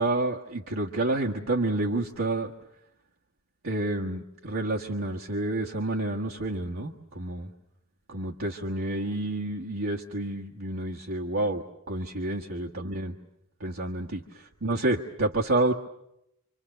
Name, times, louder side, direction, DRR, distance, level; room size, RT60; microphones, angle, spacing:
voice 1, 0.0-2.5 3.6-7.5 8.1-13.1 13.6-15.7, right 2 dB, 75° right, -2 dB, 1.6 m, -29 dB
27.0 x 26.0 x 6.8 m, 0.80 s
head